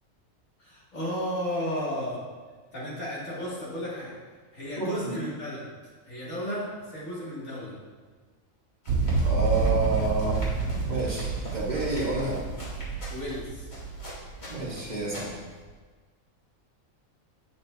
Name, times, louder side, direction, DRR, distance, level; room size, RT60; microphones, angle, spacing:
voice 1, 0.6-2.2 2.7-4.2 4.5-5.7 6.0-7.8 13.1-13.7, equal, 75° left, -8 dB, 2.9 m, -33 dB
voice 2, 4.8-5.2 9.2-10.4 10.9-12.4 14.5-15.4, right 2 dB, 35° right, -4 dB, 1.5 m, -29 dB
sound 1, 8.8-15.6, left 1 dB, 50° left, 2.5 m, -43 dB
sound 2, 8.9-14.9, right 4 dB, 90° right, 1.0 m, -29 dB
9.1 x 7.5 x 2.8 m, 1.4 s
omnidirectional pair, 1.4 m